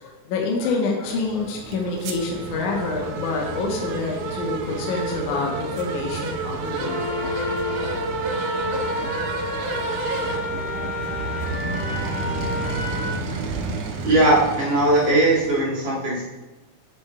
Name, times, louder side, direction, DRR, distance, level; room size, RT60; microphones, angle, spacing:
voice 1, 0.0-7.2, left 3 dB, 75° left, -1 dB, 2.4 m, -27 dB
sound 1, 1.0-15.6, right 3 dB, 80° right, 2.1 m, -30 dB
sound 2, 6.8-13.1, left 2 dB, 25° left, 1.6 m, -29 dB
voice 2, 14.0-16.2, right 1 dB, 40° right, -8 dB, 2.3 m, -19 dB
7.7 x 7.1 x 2.3 m, 1.1 s
omnidirectional pair, 3.6 m